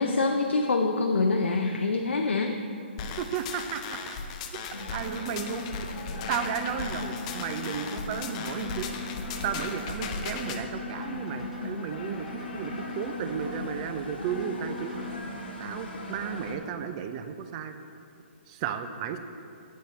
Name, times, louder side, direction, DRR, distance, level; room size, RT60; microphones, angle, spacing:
voice 1, 0.0-2.6, left 3 dB, 85° left, 3 dB, 0.5 m, -25 dB
sound 1, 3.0-10.6, left 5 dB, 35° left, 0.6 m, -37 dB
voice 2, 3.2-4.2 4.5-4.6 4.9-5.9 6.3-15.0 15.6-17.8 18.5-19.2, right 8 dB, 30° right, 8 dB, 0.5 m, -34 dB
sound 2, 4.7-16.6, left 1 dB, 60° left, 1.3 m, -39 dB
sound 3, 5.0-5.7 6.3-7.7 8.3-9.7 10.3-11.7 12.3-13.7 14.3-15.2, left 5 dB, 5° right, 1.2 m, -41 dB
8.4 x 6.4 x 4.0 m, 2.6 s
hypercardioid pair, 140°, 6 cm